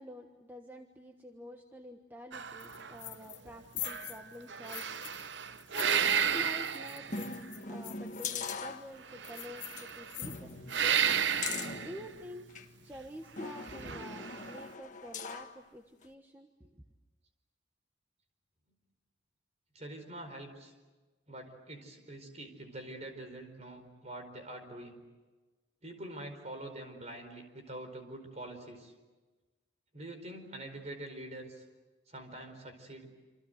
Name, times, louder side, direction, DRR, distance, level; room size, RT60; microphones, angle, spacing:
voice 1, 0.0-5.0 5.3-10.5 10.8-11.2 11.8-12.5 12.8-16.8, equal, 10° right, 3 dB, 1.3 m, -48 dB
sound 1, 2.3-3.5 3.8-7.5 9.1-10.2 10.7-12.0 13.5-14.6, right 7 dB, 65° right, 0.8 m, -33 dB
sound 2, 2.6-3.5 3.7-5.3 5.5-8.6 9.2-10.7, left 15 dB, 70° left, 1.2 m, -45 dB
sound 3, 7.1-9.3 9.7-9.8 10.2-12.7 13.4-15.6 16.0-16.1, left 4 dB, 40° left, 1.7 m, -41 dB
voice 2, 19.7-20.7 21.3-25.0 25.8-28.9 29.9-31.6 32.1-33.1, right 1 dB, 35° right, 6 dB, 4.6 m, -45 dB
27.5 x 27.0 x 8.0 m, 1.2 s
head